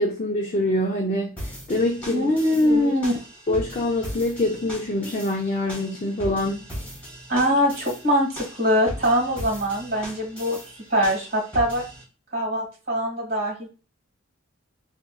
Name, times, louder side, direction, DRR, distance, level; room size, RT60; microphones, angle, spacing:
voice 1, 0.0-2.9 3.5-6.6, left 1 dB, 35° left, 0.5 m, -25 dB
sound 1, 1.4-12.0, equal, 10° left, 1.7 m, -38 dB
voice 2, 2.1-3.1 7.3-10.6 10.9-11.8 12.3-13.7, equal, 40° right, 1.8 m, -22 dB
4.3 x 2.5 x 2.3 m
head